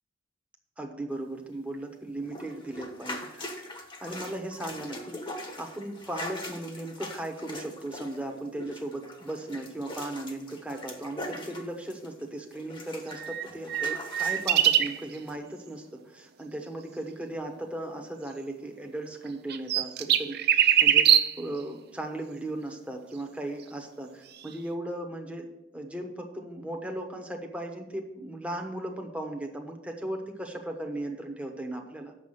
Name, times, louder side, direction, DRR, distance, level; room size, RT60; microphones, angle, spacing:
voice 1, 0.8-3.6 4.0-25.5 25.7-32.1, right 1 dB, 5° right, 2 dB, 1.0 m, -37 dB
sound 1, 2.2-12.2 12.5-14.7 15.3-15.4, left 1 dB, 25° left, 1.2 m, -41 dB
sound 2, 13.1-15.0 19.3-21.4 24.4-24.5, right 10 dB, 55° right, 0.5 m, -23 dB
7.2 x 5.8 x 6.5 m, 0.88 s
head